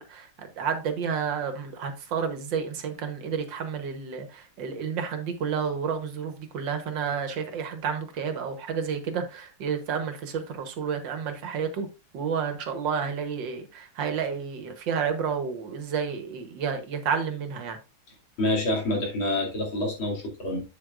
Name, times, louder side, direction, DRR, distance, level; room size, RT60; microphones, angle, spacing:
voice 1, 0.0-11.9 12.1-17.8, right 6 dB, 70° right, 1.8 m, -30 dB
voice 2, 18.4-20.6, left 1 dB, 90° left, 3.4 m, -27 dB
8.0 x 7.9 x 2.5 m
omnidirectional pair, 2.2 m